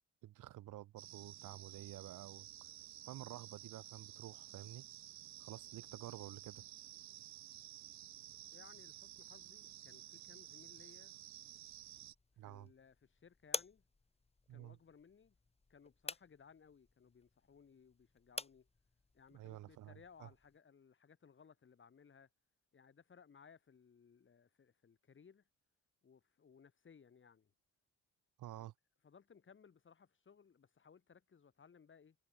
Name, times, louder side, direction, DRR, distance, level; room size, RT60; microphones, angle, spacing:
voice 1, 0.2-2.7 3.0-4.8 5.4-6.6 12.4-12.7 14.5-14.8 19.3-20.3 28.4-28.7, right 14 dB, 85° right, 2.5 m, -51 dB
sound 1, 1.0-12.1, right 13 dB, 65° right, 0.9 m, -54 dB
voice 2, 8.5-11.2 12.4-13.8 14.5-15.3 15.7-18.7 19.1-22.3 22.7-25.4 26.0-27.5 28.6-28.7 29.0-32.2, left 6 dB, 40° left, 3.4 m, -63 dB
sound 2, 11.4-20.6, left 3 dB, 20° left, 2.3 m, -51 dB
cardioid pair, 90°, 30 cm